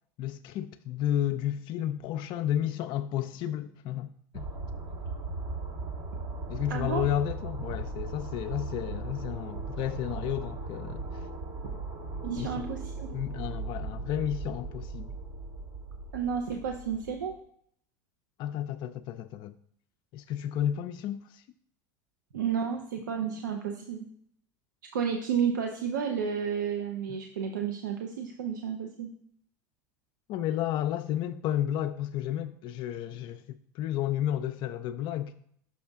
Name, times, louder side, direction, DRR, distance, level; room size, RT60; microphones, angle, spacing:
voice 1, 0.2-4.1 4.3-4.5 6.5-11.1 12.4-12.6 13.1-15.1 18.4-19.5 20.1-21.4 30.3-35.3, left 11 dB, 50° left, 0.3 m, -32 dB
sound 1, 4.3-17.3, right 3 dB, 65° right, 1.5 m, -38 dB
voice 2, 6.7-7.0 12.2-13.1 16.1-17.4 22.3-24.1 24.9-29.1, right 7 dB, 90° right, 0.6 m, -31 dB
6.2 x 5.4 x 3.5 m
hypercardioid pair, 90°, 10 cm